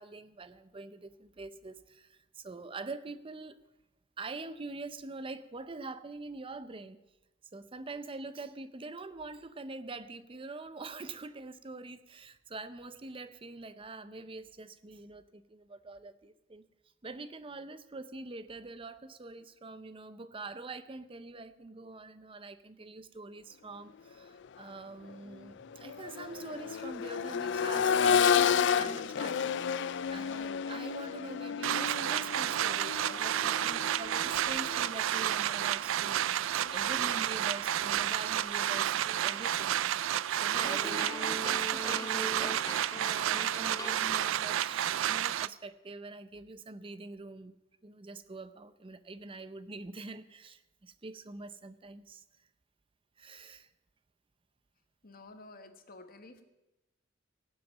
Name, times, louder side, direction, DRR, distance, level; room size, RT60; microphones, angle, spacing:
voice 1, 0.0-3.6 4.2-7.0 7.5-16.6 17.0-36.2 36.7-39.8 40.4-42.7 43.0-47.5 47.8-52.2 53.2-53.7, right 3 dB, 25° right, 13 dB, 0.6 m, -44 dB
Accelerating revving vroom, 24.4-24.6 25.0-34.9 36.6-36.7, left 7 dB, 65° left, 0.4 m, -31 dB
sound 1, 31.6-45.5, right 11 dB, 80° right, 0.4 m, -31 dB
sound 2, 40.5-44.6, left 2 dB, 20° left, 0.8 m, -42 dB
voice 2, 55.0-56.4, left 2 dB, 50° left, 7 dB, 1.4 m, -51 dB
17.0 x 7.9 x 7.2 m, 0.99 s
head